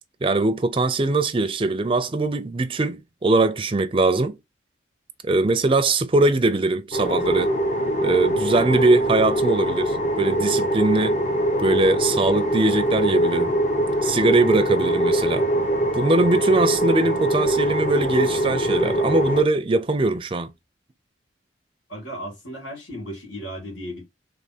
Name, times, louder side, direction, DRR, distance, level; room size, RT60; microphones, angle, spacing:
voice 1, 0.2-4.4 5.2-7.5 8.0-11.2 11.6-13.6 14.0-15.5 15.9-20.5, right 2 dB, 30° right, 0.5 m, -21 dB
sound 1, 6.9-19.4, right 1 dB, 40° left, 0.9 m, -23 dB
voice 2, 21.9-24.0, equal, 85° left, 2.5 m, -35 dB
3.4 x 3.4 x 4.2 m
head